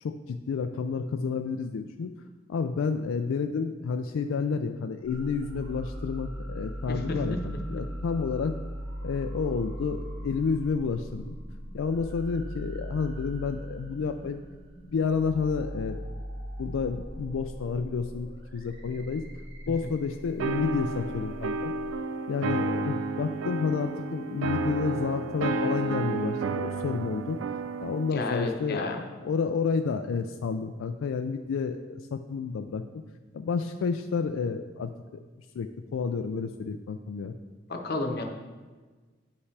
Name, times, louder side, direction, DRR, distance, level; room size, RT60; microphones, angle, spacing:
voice 1, 0.0-2.1 2.5-8.5 9.0-11.4 11.7-14.4 14.9-16.1 16.6-19.2 19.7-21.7 22.3-27.4 27.8-29.0 29.2-32.8 33.3-34.9 35.5-37.3, left 5 dB, 85° left, 6 dB, 0.3 m, -30 dB
sound 1, 5.0-21.9, equal, 65° right, 2.0 m, -39 dB
sound 2, 20.4-28.2, right 3 dB, 90° right, 0.4 m, -31 dB
voice 2, 28.1-29.0 37.7-38.2, left 2 dB, 55° left, 3 dB, 0.9 m, -31 dB
9.3 x 5.6 x 3.3 m, 1.4 s
head